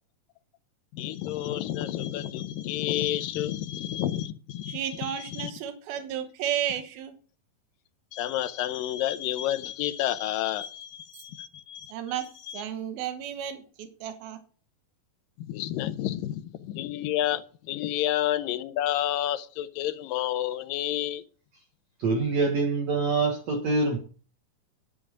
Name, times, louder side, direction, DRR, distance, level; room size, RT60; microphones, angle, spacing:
voice 1, 0.9-5.5 8.1-11.9 12.5-12.6 15.5-21.2, left 12 dB, 75° left, 12 dB, 2.3 m, -30 dB
voice 2, 4.7-7.2 11.9-14.4, right 10 dB, 85° right, 8 dB, 3.1 m, -33 dB
voice 3, 22.0-24.0, right 3 dB, 55° right, 2 dB, 2.3 m, -25 dB
11.0 x 8.8 x 5.0 m, 0.40 s
omnidirectional pair, 4.2 m